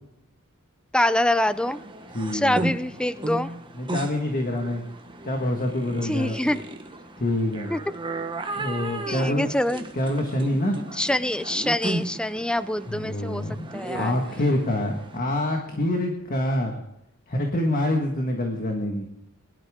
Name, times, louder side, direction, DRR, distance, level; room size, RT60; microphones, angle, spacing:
voice 1, 0.9-1.8 2.3-3.5 6.0-6.6 7.7-7.8 9.1-9.8 10.9-13.4 13.7-14.2, left 1 dB, 5° left, 14 dB, 0.5 m, -25 dB
sound 1, 1.5-15.2, right 2 dB, 20° right, 1.2 m, -35 dB
voice 2, 2.1-2.7 3.7-4.8 5.2-6.5 7.2-7.7 8.5-9.5 9.9-10.8 12.9-16.7 17.3-19.1, left 1 dB, 40° left, 2 dB, 1.6 m, -26 dB
22.0 x 12.0 x 3.7 m, 0.86 s
head